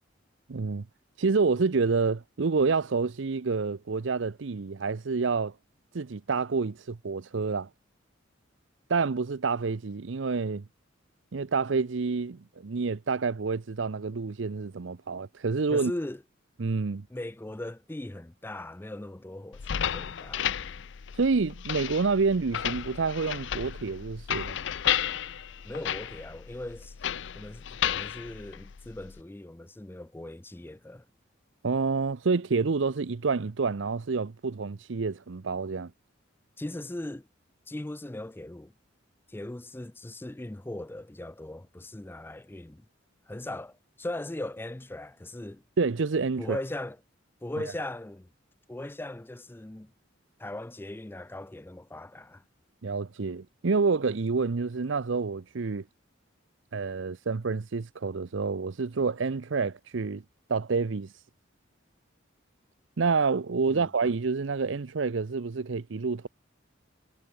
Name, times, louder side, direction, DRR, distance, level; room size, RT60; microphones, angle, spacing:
voice 1, 0.5-0.8 1.2-5.5 5.9-7.7 8.9-10.6 11.3-15.9 16.6-17.0 21.2-24.6 31.6-35.9 45.8-46.6 52.8-55.8 56.7-60.2 60.5-61.1 63.0-66.3, right 4 dB, 65° right, 0.6 m, -28 dB
voice 2, 15.7-16.2 17.1-20.5 25.6-27.0 27.4-31.1 36.6-37.3 37.7-38.7 39.3-42.8 43.3-45.6 46.4-47.0 47.4-48.3 48.7-49.9 50.4-52.4 63.7-63.9, left 1 dB, 10° left, 0.5 m, -39 dB
sound 1, 19.5-29.2, left 10 dB, 60° left, 0.5 m, -33 dB
head